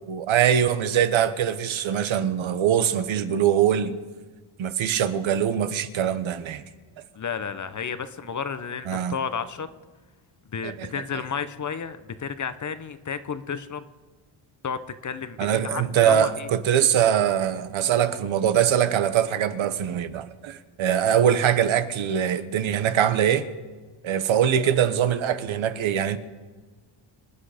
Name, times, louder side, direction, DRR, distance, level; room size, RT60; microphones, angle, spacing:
voice 1, 0.1-3.9 4.6-6.6 8.9-9.2 10.6-10.9 15.4-23.5 24.0-26.2, right 9 dB, 65° right, 1.2 m, -22 dB
voice 2, 7.1-9.7 10.5-13.8 14.6-16.5 20.8-20.9, left 6 dB, 35° left, 0.9 m, -32 dB
26.5 x 9.6 x 5.1 m
cardioid pair, 95°, 50 cm